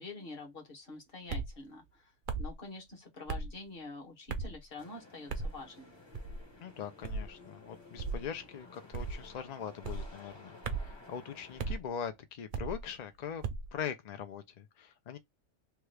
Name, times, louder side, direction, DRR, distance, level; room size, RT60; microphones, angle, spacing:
voice 1, 0.0-2.1 2.4-5.9, left 3 dB, 50° left, 1.3 m, -46 dB
sound 1, 1.3-1.5 2.3-2.5 3.3-3.5 4.3-4.6 5.3-5.6 6.1-6.4 7.0-7.3 8.0-8.3 8.9-9.3 9.8-10.1 10.6-11.0 11.6-11.8 12.5-12.8 13.4-13.7, right 4 dB, 55° right, 0.5 m, -36 dB
sound 2, 4.8-11.8, left 3 dB, 25° left, 0.8 m, -55 dB
voice 2, 6.6-13.4 13.7-15.2, left 7 dB, 65° left, 0.4 m, -41 dB
3.0 x 2.3 x 3.2 m
omnidirectional pair, 1.2 m